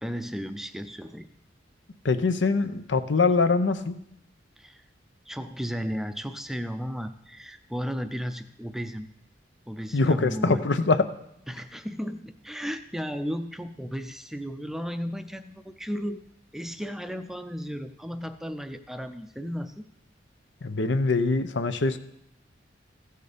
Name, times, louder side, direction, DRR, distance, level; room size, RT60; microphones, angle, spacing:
voice 1, 0.0-1.3 4.6-4.8 5.3-9.1 9.7-10.6 11.5-16.2 16.5-19.8, equal, ahead, 9 dB, 0.5 m, -34 dB
voice 2, 2.0-4.0 9.9-11.1 20.6-22.0, left 3 dB, 80° left, 10 dB, 0.7 m, -23 dB
15.0 x 6.7 x 5.1 m, 0.81 s
head